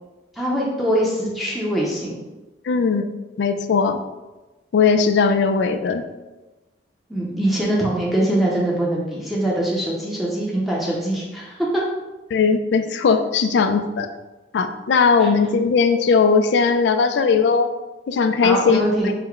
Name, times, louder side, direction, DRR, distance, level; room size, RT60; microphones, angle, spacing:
voice 1, 0.4-2.2 7.1-11.7 15.2-15.3 18.4-19.1, right 1 dB, ahead, -5 dB, 0.5 m, -23 dB
voice 2, 2.6-3.1 3.4-4.0 4.7-6.1 12.3-14.1 14.5-17.7 18.1-18.8, left 5 dB, 70° left, 8 dB, 0.3 m, -18 dB
3.8 x 2.1 x 4.3 m, 1.1 s
head